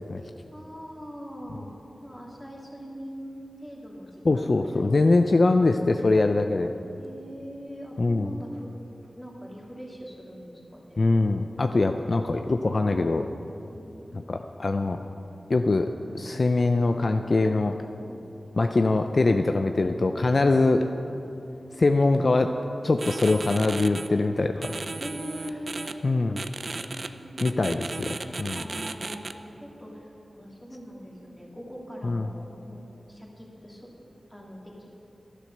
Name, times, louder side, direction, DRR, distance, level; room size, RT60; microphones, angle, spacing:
voice 1, 0.5-1.7 2.0-5.1 7.0-8.7 9.0-11.1 13.7-14.4 18.1-18.2 25.0-26.2 26.6-27.4 28.5-33.9 34.3-34.9, equal, 5° left, -3 dB, 2.6 m, -42 dB
voice 2, 4.2-6.7 8.0-8.3 11.0-13.3 14.1-15.0 15.5-15.9 16.1-17.7 18.6-20.9 21.8-22.5 22.8-24.8 26.0-26.4 27.4-28.6 32.0-32.3, left 3 dB, 50° left, 6 dB, 0.5 m, -23 dB
sound 1, 23.0-24.1 24.6-25.9 26.4-27.1 27.4-29.3, right 3 dB, 55° right, 0.5 m, -35 dB
11.5 x 11.0 x 6.6 m, 2.9 s
wide cardioid pair, 95°, 0 cm